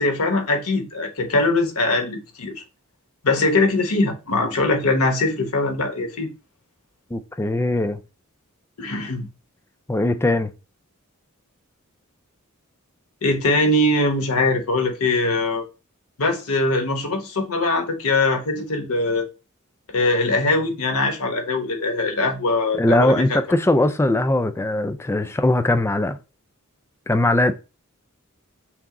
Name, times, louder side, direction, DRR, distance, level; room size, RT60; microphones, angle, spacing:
voice 1, 0.0-2.6 3.2-6.3 8.8-9.3 13.2-15.6 16.2-19.3 19.9-23.4, left 2 dB, 75° left, 1.0 m, -21 dB
voice 2, 7.1-8.0 9.9-10.5 22.8-26.2 27.1-27.5, left 1 dB, 10° left, 0.3 m, -20 dB
6.0 x 2.0 x 3.6 m
head